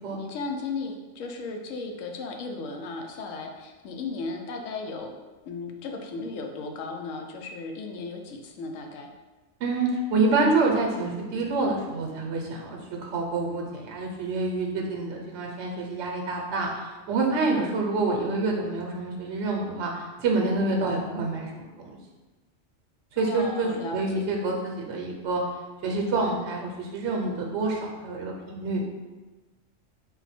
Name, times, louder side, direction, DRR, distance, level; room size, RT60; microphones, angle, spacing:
voice 1, 0.1-5.2 5.5-9.1 23.2-24.7, left 3 dB, 90° left, 3 dB, 0.9 m, -35 dB
voice 2, 9.6-21.9 23.1-25.4 25.8-28.8, right 3 dB, 70° right, 0 dB, 0.9 m, -27 dB
4.0 x 2.1 x 4.1 m, 1.2 s
omnidirectional pair, 1.3 m